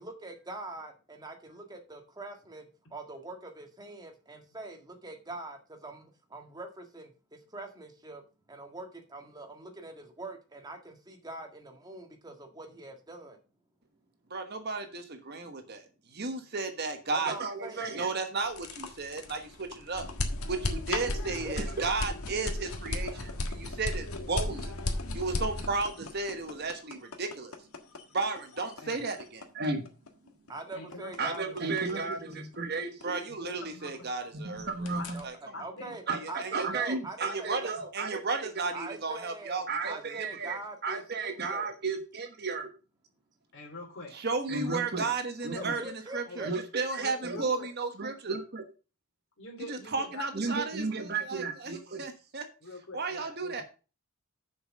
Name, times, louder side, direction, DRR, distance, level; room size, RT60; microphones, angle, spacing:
voice 1, 0.0-8.2 8.5-13.4 17.1-18.0 21.4-21.5 30.5-32.4 35.1-35.3 35.6-37.7 38.7-41.7 45.5-46.5, right 2 dB, 20° right, 3 dB, 1.6 m, -43 dB
voice 2, 14.3-15.8 16.1-20.1 20.5-24.7 25.1-27.5 28.1-29.8 31.2-35.3 36.1-42.7 44.1-48.6 49.7-52.4 52.9-53.6, right 4 dB, 45° right, 6 dB, 1.2 m, -33 dB
sound 1, 18.4-34.3 34.6-35.2, left 2 dB, 75° left, 1.5 m, -36 dB
voice 3, 30.7-31.8 33.4-34.1 35.0-35.1 35.5-36.0 43.5-44.1 44.5-44.8 45.5-45.6 46.3-46.5 47.0-47.7 49.4-51.0 52.6-53.6, left 2 dB, 55° left, 1 dB, 3.2 m, -45 dB
6.9 x 5.9 x 6.3 m, 0.34 s
head